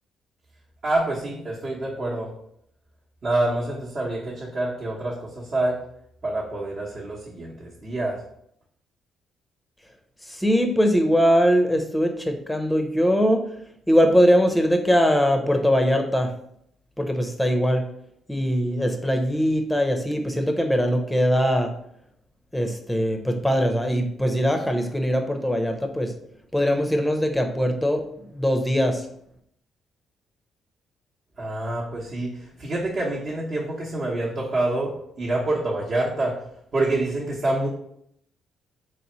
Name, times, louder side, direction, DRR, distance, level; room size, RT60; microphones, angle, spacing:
voice 1, 0.8-2.3 3.2-5.8 6.2-8.2 31.4-36.4 36.7-37.7, right 2 dB, 45° right, -6 dB, 1.0 m, -27 dB
voice 2, 10.3-13.5 13.9-16.3 17.0-17.8 18.3-21.7 22.5-26.1 26.5-29.1, equal, 5° left, 4 dB, 0.6 m, -21 dB
4.0 x 3.2 x 3.0 m, 0.72 s
cardioid pair, 90°, 0 cm